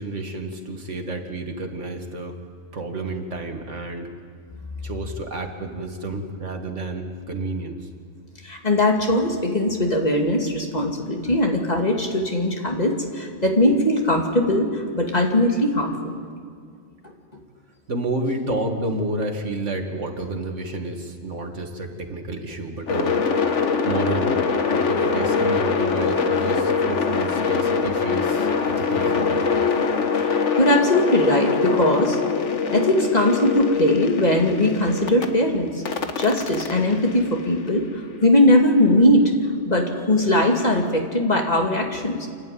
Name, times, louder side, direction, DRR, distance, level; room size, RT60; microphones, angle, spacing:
voice 1, 0.0-2.4 2.7-4.1 4.8-7.9 17.9-23.4 23.8-29.5, right 2 dB, 85° right, 4 dB, 2.2 m, -30 dB
voice 2, 8.4-15.9 17.0-17.1 30.2-32.2 32.7-35.7 36.2-39.4 39.6-42.3, left 1 dB, 35° left, 1 dB, 2.4 m, -20 dB
sound 1, 22.9-35.3 35.9-38.0, left 5 dB, 80° left, 1.6 m, -23 dB
28.5 x 11.5 x 9.2 m, 2.1 s
omnidirectional pair, 1.2 m